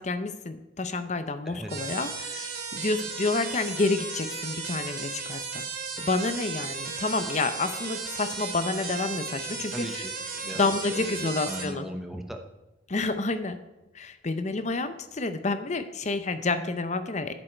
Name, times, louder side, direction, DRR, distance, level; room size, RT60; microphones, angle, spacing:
voice 1, 0.0-5.7 6.0-10.0 10.5-11.9 12.9-13.6 13.9-17.3, left 3 dB, 40° left, 11 dB, 0.7 m, -29 dB
sound 1, 1.7-11.7, right 5 dB, 60° right, 2.5 m, -35 dB
voice 2, 9.7-10.6 10.9-12.4, equal, ahead, 3 dB, 0.9 m, -38 dB
10.5 x 7.9 x 4.4 m, 1.0 s
head